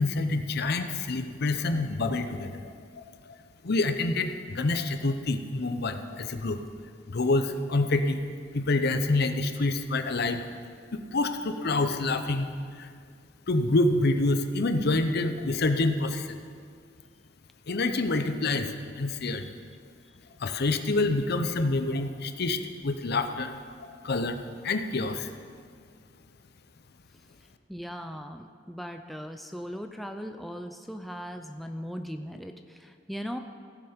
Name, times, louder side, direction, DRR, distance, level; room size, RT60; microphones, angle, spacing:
voice 1, 0.0-3.4 3.6-6.6 7.1-8.2 8.5-10.4 10.9-12.9 13.5-16.4 17.7-19.5 20.4-24.4 24.6-25.3, left 2 dB, 60° left, 8 dB, 0.7 m, -27 dB
voice 2, 27.7-33.4, equal, ahead, 5 dB, 0.4 m, -38 dB
16.0 x 7.1 x 5.1 m, 2.1 s
head